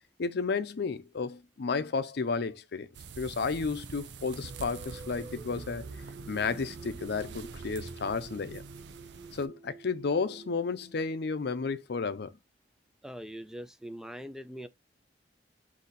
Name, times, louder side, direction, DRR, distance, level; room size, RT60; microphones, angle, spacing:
voice 1, 0.2-2.9 3.2-5.9 6.3-8.6 9.3-12.4, left 4 dB, 60° left, 0.5 m, -32 dB
sound 1, 2.9-9.5, right 4 dB, 70° right, 0.5 m, -45 dB
sound 2, 4.4-11.8, right 3 dB, 40° right, 1.2 m, -50 dB
voice 2, 13.0-14.7, equal, 5° right, 0.3 m, -42 dB
3.9 x 2.7 x 4.1 m
head